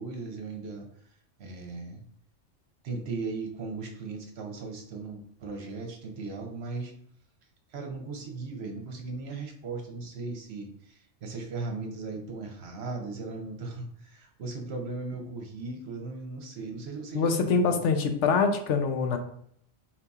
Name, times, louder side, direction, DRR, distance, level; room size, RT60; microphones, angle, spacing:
voice 1, 0.0-2.0 2.8-6.9 7.7-17.8, right 3 dB, 65° right, 3 dB, 1.0 m, -37 dB
voice 2, 17.1-19.2, left 5 dB, 80° left, 6 dB, 0.9 m, -24 dB
4.7 x 2.8 x 3.5 m, 0.68 s
omnidirectional pair, 1.2 m